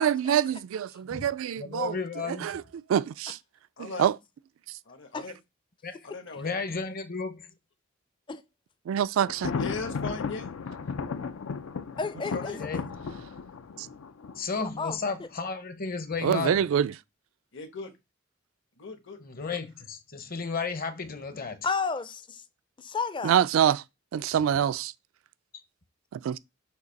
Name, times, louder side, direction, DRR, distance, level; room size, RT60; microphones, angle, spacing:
voice 1, 0.0-2.0 2.3-2.6 2.9-3.4 3.8-4.2 4.7-4.8 8.9-9.5 13.8-13.9 16.2-16.9 23.2-23.8 24.1-24.9 26.1-26.4, right 9 dB, 75° right, 0.3 m, -25 dB
voice 2, 1.6-2.5 5.8-6.0 6.4-7.5 12.6-12.8 14.4-16.6 19.2-21.7, left 4 dB, 45° left, 0.8 m, -33 dB
voice 3, 3.8-4.1 4.8-5.4 6.0-6.8 9.6-10.5 12.3-12.6 17.5-17.9 18.8-19.2, left 3 dB, 65° left, 1.3 m, -38 dB
Thunder, 9.3-15.1, left 5 dB, 90° left, 0.5 m, -35 dB
voice 4, 12.0-12.7 14.8-15.3 21.6-22.4 22.8-23.4, left 4 dB, 25° left, 0.4 m, -32 dB
6.5 x 2.8 x 5.2 m
head